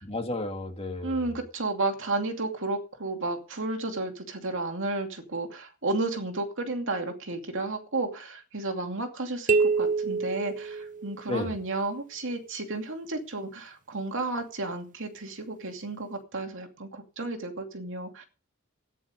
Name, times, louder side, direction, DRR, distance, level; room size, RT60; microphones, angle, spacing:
voice 1, 0.0-1.4 11.3-11.5, left 2 dB, 30° left, 2.3 m, -33 dB
voice 2, 1.0-18.2, right 2 dB, 65° right, 2.6 m, -32 dB
sound 1, 9.5-11.4, right 4 dB, 40° right, 0.6 m, -26 dB
14.0 x 10.0 x 5.2 m
head